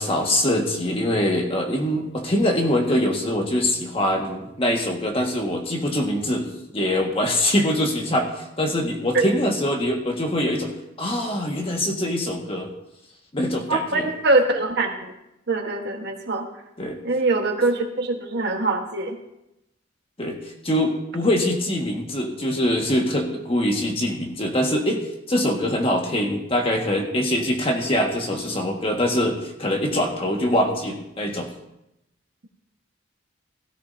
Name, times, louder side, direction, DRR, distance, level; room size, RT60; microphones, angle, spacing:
voice 1, 0.0-6.4 6.7-10.7 11.0-12.7 13.3-14.1 16.8-17.0 20.2-20.4 20.6-31.5, left 1 dB, 30° left, 2 dB, 1.6 m, -23 dB
voice 2, 13.7-15.1 15.5-16.5 17.0-19.1, right 2 dB, 60° right, 3 dB, 1.4 m, -23 dB
17.0 x 13.5 x 2.7 m, 0.87 s
head